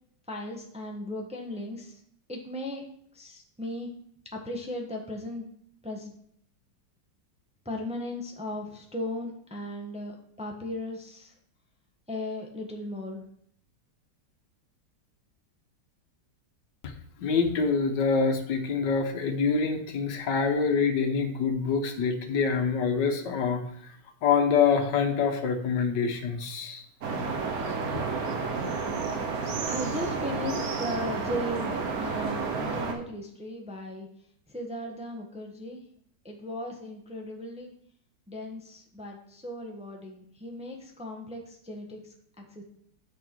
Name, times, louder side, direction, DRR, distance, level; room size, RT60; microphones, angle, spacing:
voice 1, 0.3-2.0 2.3-2.8 3.1-3.9 4.3-5.4 5.8-6.1 7.6-11.3 12.1-13.2 29.6-34.1 34.5-35.8 36.2-37.7 38.3-42.6, left 1 dB, 5° right, 0 dB, 0.9 m, -37 dB
voice 2, 17.2-23.6 24.2-26.8 27.9-28.0, left 5 dB, 80° left, 6 dB, 1.6 m, -25 dB
sound 1, 27.0-32.9, right 4 dB, 60° right, 1.4 m, -31 dB
8.0 x 6.3 x 4.5 m, 0.66 s
omnidirectional pair, 1.9 m